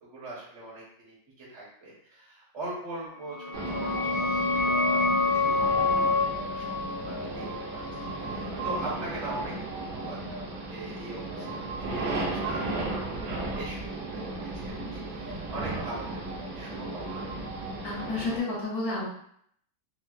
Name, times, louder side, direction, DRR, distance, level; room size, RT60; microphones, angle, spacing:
voice 1, 0.0-3.9 4.2-6.0 6.5-7.4 7.7-13.8 14.1-17.4, right 2 dB, 50° right, -7 dB, 0.9 m, -42 dB
sound 1, 3.3-8.7, left 3 dB, 75° left, 1.4 m, -28 dB
sound 2, 3.5-18.4, right 2 dB, 80° right, 1.4 m, -35 dB
voice 2, 17.8-19.1, left 3 dB, 60° left, -11 dB, 1.1 m, -31 dB
4.3 x 2.0 x 2.3 m, 0.67 s
omnidirectional pair, 2.2 m